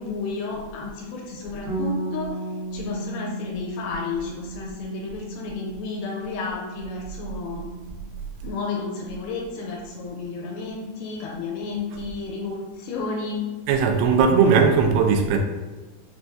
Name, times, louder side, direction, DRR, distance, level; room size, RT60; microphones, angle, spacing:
voice 1, 0.0-2.4 2.7-7.7 8.4-13.5, left 4 dB, 85° left, -2 dB, 2.5 m, -32 dB
Bass guitar, 1.7-7.9, right 2 dB, 70° right, 3.4 m, -35 dB
voice 2, 13.7-15.4, right 5 dB, 85° right, 3 dB, 2.8 m, -18 dB
6.7 x 2.3 x 2.6 m, 1.2 s
omnidirectional pair, 5.1 m